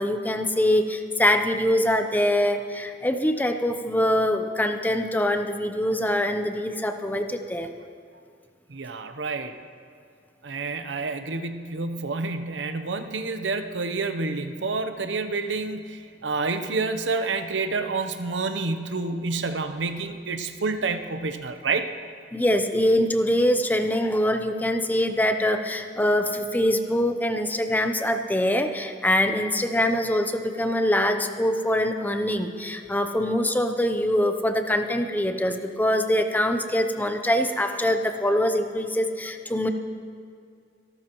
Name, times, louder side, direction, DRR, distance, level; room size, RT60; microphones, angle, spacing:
voice 1, 0.0-7.7 22.3-39.7, left 1 dB, 10° left, 7 dB, 0.6 m, -24 dB
voice 2, 8.7-9.5 10.4-21.9, right 3 dB, 85° right, 8 dB, 0.8 m, -28 dB
26.5 x 12.5 x 3.0 m, 2.3 s
head